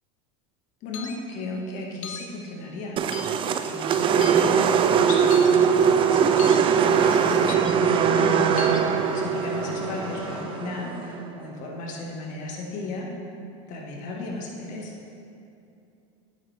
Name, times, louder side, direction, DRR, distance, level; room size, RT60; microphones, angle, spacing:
voice 1, 0.8-8.5 9.1-13.1 13.7-14.9, left 2 dB, 50° left, -1 dB, 1.9 m, -35 dB
sound 1, 0.9-1.2 2.0-2.3 3.1-3.4 4.2-4.5 5.3-5.5 6.4-6.6 7.5-7.7 8.6-8.8, left 7 dB, 85° left, 0.9 m, -36 dB
sound 2, 3.0-11.2, right 7 dB, 35° right, 0.5 m, -21 dB
sound 3, 5.3-10.4, right 1 dB, 85° right, 2.0 m, -36 dB
9.4 x 9.0 x 3.6 m, 2.7 s
supercardioid pair, 115°, 16 cm